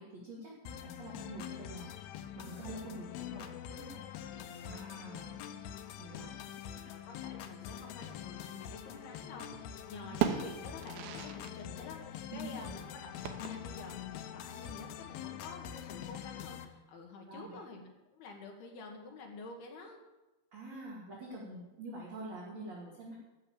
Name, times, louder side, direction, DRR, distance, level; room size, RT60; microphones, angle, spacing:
voice 1, 0.0-1.9 2.3-4.1 4.6-5.6 6.0-6.9 10.0-10.1 12.3-12.7 17.3-17.6 20.5-23.2, right 1 dB, 45° right, -4 dB, 2.6 m, -46 dB
sound 1, 0.7-16.7, left 10 dB, 85° left, 2.2 m, -45 dB
voice 2, 6.5-13.1 13.4-17.8 18.1-20.0, left 3 dB, 65° left, 2 dB, 3.0 m, -49 dB
sound 2, 8.9-9.7 10.0-11.6 11.9-12.0 13.2-13.9, right 9 dB, 80° right, 2.2 m, -37 dB
14.0 x 6.7 x 8.7 m, 1.1 s
omnidirectional pair, 5.7 m